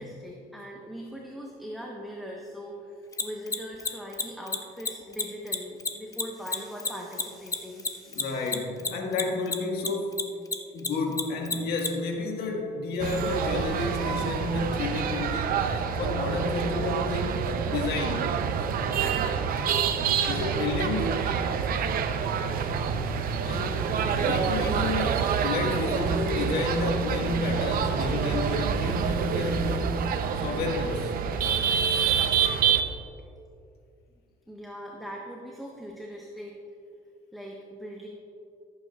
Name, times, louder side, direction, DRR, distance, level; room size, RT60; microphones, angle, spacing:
voice 1, 0.0-8.5 34.5-36.6 37.3-38.1, equal, ahead, -2 dB, 1.0 m, -41 dB
Mechanisms, 3.1-9.9 10.1-11.9, left 4 dB, 20° left, 0.6 m, -28 dB
voice 2, 8.1-10.3 10.7-15.6 16.0-18.4 20.2-21.2 23.4-23.8 24.2-30.1 30.4-31.1, left 3 dB, 75° left, 0 dB, 1.7 m, -31 dB
sound 1, 13.0-32.8, right 6 dB, 60° right, 0.7 m, -27 dB
15.5 x 8.3 x 2.4 m, 2.5 s
cardioid pair, 110°, 17 cm